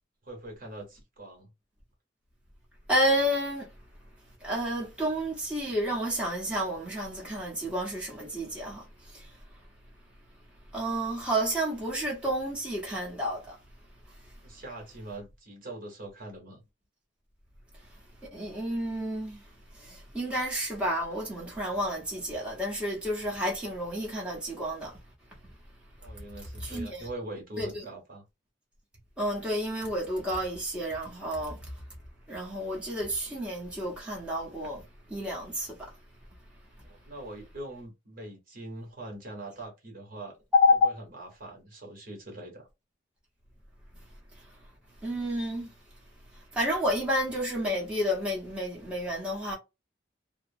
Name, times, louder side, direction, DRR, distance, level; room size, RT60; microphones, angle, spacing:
voice 1, 0.2-1.5 14.4-16.6 26.0-28.2 36.8-40.4 40.8-42.7, right 1 dB, 50° right, 1.1 m, -42 dB
voice 2, 2.9-3.7 4.4-9.4 10.7-13.6 18.3-19.4 19.7-25.0 26.6-27.0 27.6-27.7 29.2-31.7 32.3-35.9 40.5-40.8 44.4-44.5 45.0-45.7 46.5-49.6, equal, 5° right, 0.9 m, -30 dB
2.7 x 2.0 x 2.7 m
head